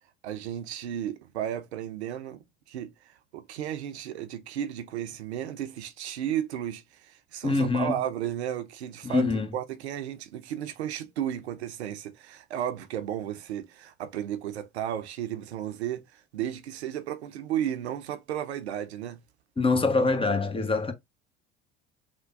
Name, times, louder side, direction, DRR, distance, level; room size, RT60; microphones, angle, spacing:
voice 1, 0.2-9.3 9.5-19.2, right 10 dB, 85° right, 0.6 m, -34 dB
voice 2, 7.4-8.0 9.0-9.5 19.6-20.9, left 3 dB, 15° left, 0.8 m, -24 dB
3.4 x 2.1 x 3.8 m
hypercardioid pair, 70°, 32 cm